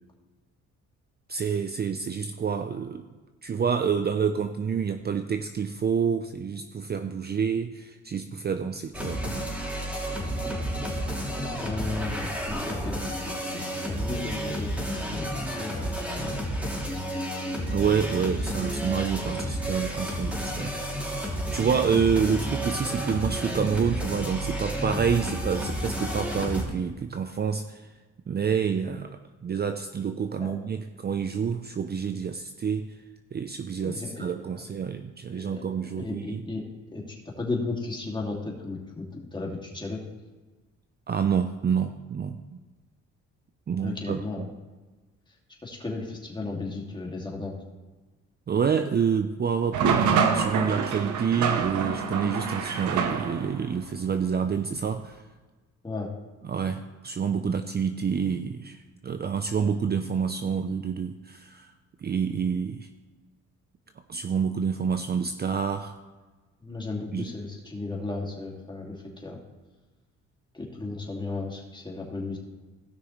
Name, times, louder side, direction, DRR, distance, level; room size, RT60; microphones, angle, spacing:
voice 1, 1.3-3.1 3.4-9.4 17.7-20.9 21.5-27.9 28.3-32.9 33.3-36.4 41.1-42.6 43.7-44.5 48.5-55.2 56.4-58.8 59.0-61.7 62.0-62.9 64.1-65.9 67.1-67.3, right 6 dB, 35° right, 8 dB, 0.5 m, -28 dB
sound 1, 8.9-26.6, equal, 5° right, 3.0 m, -31 dB
voice 2, 11.6-16.4 24.8-24.9 30.4-30.6 33.8-34.6 35.3-40.0 43.8-44.4 45.6-47.5 55.8-56.1 66.6-69.4 70.5-72.4, left 3 dB, 15° left, -1 dB, 2.3 m, -35 dB
sound 2, 49.7-53.6, right 6 dB, 75° right, 1.0 m, -26 dB
16.5 x 6.1 x 3.1 m, 1.3 s
cardioid pair, 90°, 30 cm